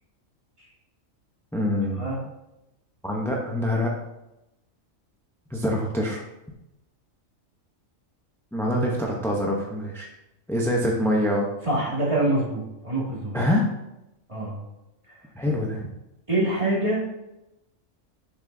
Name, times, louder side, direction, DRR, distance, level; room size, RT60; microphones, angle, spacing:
voice 1, 1.5-2.1 3.0-3.9 5.5-6.2 8.5-10.1 10.5-11.5 13.3-13.7 15.3-15.9, left 1 dB, 5° left, -2 dB, 0.5 m, -25 dB
voice 2, 11.6-13.4 14.3-14.5 15.1-15.2 15.5-15.6 16.3-17.0, right 1 dB, 25° right, -5 dB, 2.1 m, -25 dB
7.2 x 6.2 x 2.7 m, 0.90 s
omnidirectional pair, 1.4 m